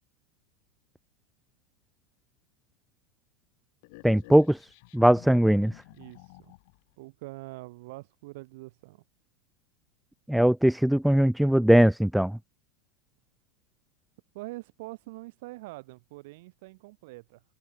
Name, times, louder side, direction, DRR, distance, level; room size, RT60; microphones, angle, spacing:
sound 1, 3.8-6.9, left 29 dB, 55° left, 2.4 m, -51 dB
voice 1, 4.0-4.6 4.9-5.7 10.3-12.4, right 1 dB, ahead, 0.3 m, -20 dB
voice 2, 5.9-6.5 7.0-9.0 14.3-17.4, right 22 dB, 55° right, 3.7 m, -44 dB
hypercardioid pair, 95°, 0 cm